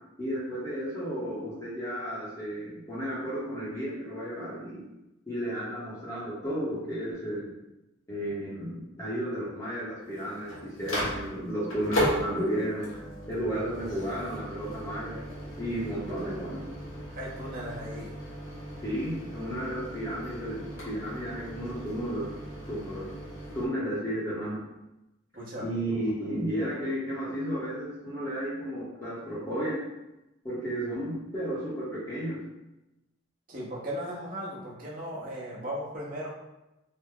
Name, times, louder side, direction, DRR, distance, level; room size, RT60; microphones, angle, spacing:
voice 1, 0.2-4.9 5.3-7.5 8.1-13.0 13.3-15.2 15.6-16.7 18.8-22.3 22.7-23.1 23.5-24.6 25.6-29.8 30.4-32.4, equal, 15° left, -10 dB, 0.7 m, -33 dB
Microwave oven, 10.0-23.7, equal, 90° left, 1.1 m, -37 dB
voice 2, 17.1-18.1 25.3-25.7 33.5-36.3, equal, 45° right, -5 dB, 0.8 m, -37 dB
3.1 x 2.0 x 3.6 m, 0.95 s
head